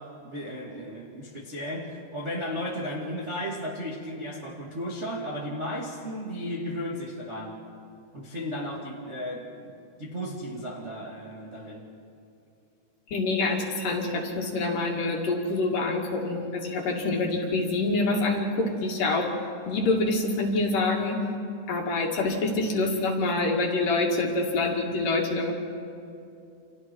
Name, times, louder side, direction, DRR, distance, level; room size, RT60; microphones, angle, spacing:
voice 1, 0.0-7.6 8.1-11.9, equal, 30° right, -3 dB, 1.4 m, -35 dB
voice 2, 13.1-19.3 19.7-21.2 21.7-25.5, left 2 dB, 55° left, 0 dB, 3.6 m, -26 dB
30.0 x 28.0 x 4.6 m, 2.6 s
omnidirectional pair, 5.0 m